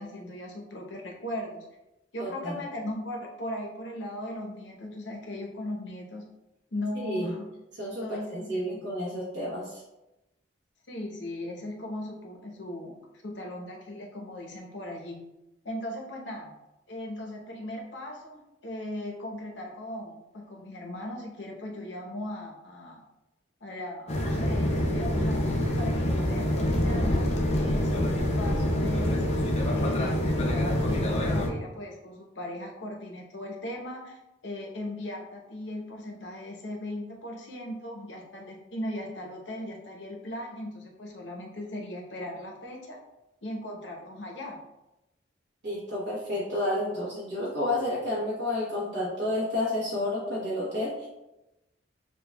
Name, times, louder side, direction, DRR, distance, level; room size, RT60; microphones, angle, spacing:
voice 1, 0.0-1.7 2.1-6.2 6.7-7.5 8.0-8.8 10.9-13.0 13.2-15.2 15.6-16.6 16.9-23.0 23.6-29.3 29.7-43.0 43.4-44.6, left 1 dB, 70° left, 0 dB, 0.8 m, -38 dB
voice 2, 2.2-2.5 7.0-7.3 7.8-9.7 45.6-51.1, left 1 dB, 60° right, -7 dB, 1.0 m, -30 dB
sound 1, 24.1-31.5, left 1 dB, 35° left, 0.5 m, -26 dB
6.9 x 2.3 x 2.2 m, 0.95 s
head